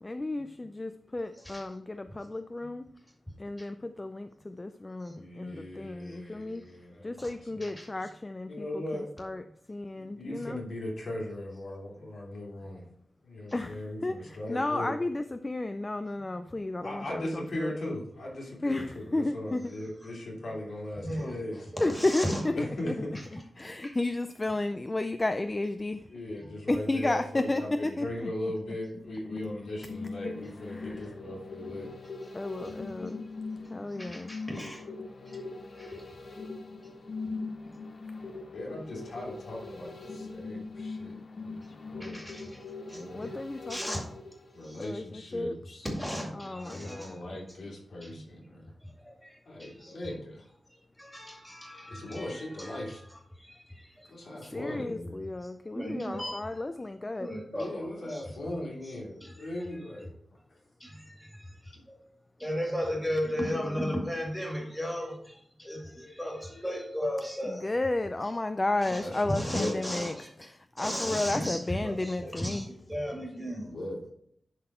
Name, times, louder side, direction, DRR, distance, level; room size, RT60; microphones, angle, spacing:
voice 1, 0.0-2.9 3.4-6.6 7.0-10.6 13.5-18.0 18.6-19.7 21.1-21.3 21.8-26.1 26.7-28.3 30.7-31.1 32.3-33.3 33.7-34.4 43.1-44.1 44.8-45.6 46.3-47.4 54.5-57.3 63.5-64.0 67.4-72.7, left 2 dB, 25° left, 9 dB, 0.3 m, -33 dB
voice 2, 5.1-7.2 7.5-7.6 8.5-9.1 10.0-12.8 13.2-14.9 16.8-21.7 22.5-23.2 26.1-31.9 38.5-41.2 41.4-43.3 44.5-45.9 46.5-48.6 49.4-50.5 51.9-53.0 54.1-55.1 57.5-60.1 69.0-69.7 73.0-74.0, left 1 dB, 75° left, -3 dB, 2.9 m, -39 dB
voice 3, 21.0-21.4 21.7-22.4 23.8-23.9 26.4-26.6 34.0-34.8 35.3-35.4 35.8-36.0 42.0-42.6 42.9-43.3 43.7-44.0 44.6-44.8 45.8-47.3 48.0-48.2 48.8-50.0 51.0-53.0 53.4-54.1 54.4-54.5 55.7-56.4 57.2-58.2 58.8-59.6 60.8-62.0 62.4-67.6 68.8-69.0 69.3-70.3 70.8-73.7, equal, 5° left, -1 dB, 2.2 m, -36 dB
sound 1, 29.0-45.2 45.6-45.7, left 3 dB, 55° left, 0.9 m, -41 dB
11.5 x 4.0 x 4.4 m, 0.67 s
wide cardioid pair, 120°, 0 cm